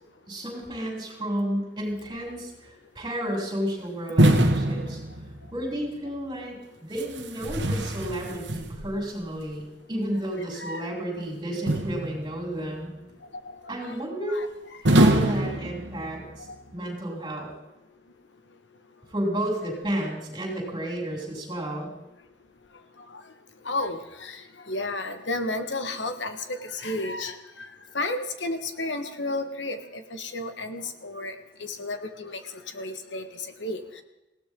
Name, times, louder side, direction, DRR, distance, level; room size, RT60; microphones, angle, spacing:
voice 1, 0.3-5.0 5.5-12.9 13.7-14.4 14.8-16.5 16.7-17.5 19.1-21.9, right 1 dB, 25° right, -2 dB, 7.2 m, -32 dB
sound 1, 4.2-5.6 6.9-9.0 11.7-12.5 14.8-16.3, right 1 dB, 75° right, 1.6 m, -23 dB
voice 2, 10.6-10.9 13.4-13.5 13.8-14.0 14.3-14.5 23.6-27.7 27.9-31.3 31.6-32.4 32.7-33.3 33.6-34.0, left 2 dB, 75° left, 8 dB, 1.6 m, -32 dB
20.0 x 17.0 x 3.8 m, 1.0 s
head